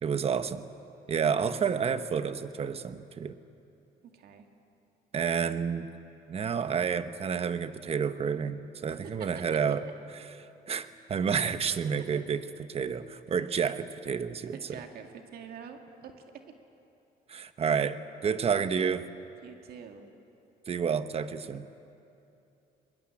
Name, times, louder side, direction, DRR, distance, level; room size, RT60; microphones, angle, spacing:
voice 1, 0.0-0.7 1.1-3.4 5.1-5.9 6.3-9.8 10.7-12.4 12.7-14.8 17.3-19.1 20.7-21.7, right 6 dB, 35° right, 11 dB, 1.0 m, -30 dB
voice 2, 4.1-4.5 8.9-9.4 12.1-12.2 14.5-16.1 19.4-20.1, right 7 dB, 65° right, 4 dB, 2.1 m, -46 dB
21.5 x 21.5 x 8.7 m, 2.8 s
cardioid pair, 110°, 17 cm